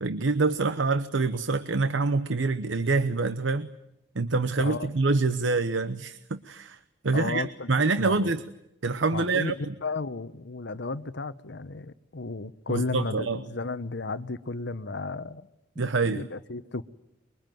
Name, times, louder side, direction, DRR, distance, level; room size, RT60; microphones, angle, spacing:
voice 1, 0.0-3.7 4.1-6.8 7.0-8.4 8.8-9.7 12.7-13.4 15.8-16.3, right 3 dB, 85° right, 0.9 m, -26 dB
voice 2, 7.1-8.3 9.1-15.5 15.8-16.8, left 3 dB, 65° left, 1.0 m, -34 dB
24.0 x 23.0 x 9.2 m
head